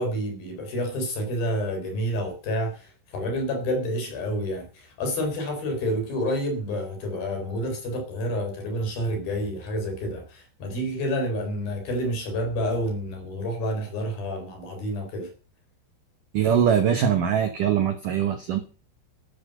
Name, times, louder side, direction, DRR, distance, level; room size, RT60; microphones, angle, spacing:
voice 1, 0.0-15.3, equal, 50° left, 5 dB, 5.8 m, -29 dB
voice 2, 16.3-18.6, right 8 dB, 70° right, 8 dB, 2.0 m, -22 dB
12.5 x 12.5 x 6.7 m, 0.38 s
omnidirectional pair, 5.4 m